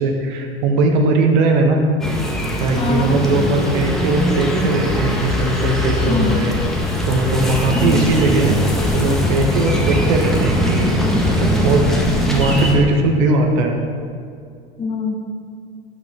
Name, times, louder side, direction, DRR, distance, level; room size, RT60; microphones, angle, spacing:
voice 1, 0.0-1.8 2.6-6.6 7.1-8.6 8.9-12.0 12.3-13.8, right 3 dB, 50° right, 3 dB, 1.6 m, -19 dB
sound 1, 2.0-12.8, left 1 dB, ahead, 1.6 m, -20 dB
voice 2, 2.7-3.2 6.1-6.4 7.7-8.1 14.8-15.1, left 3 dB, 20° left, 2 dB, 1.2 m, -23 dB
18.0 x 7.9 x 3.7 m, 2.3 s
figure-of-eight pair, 90°, 31 cm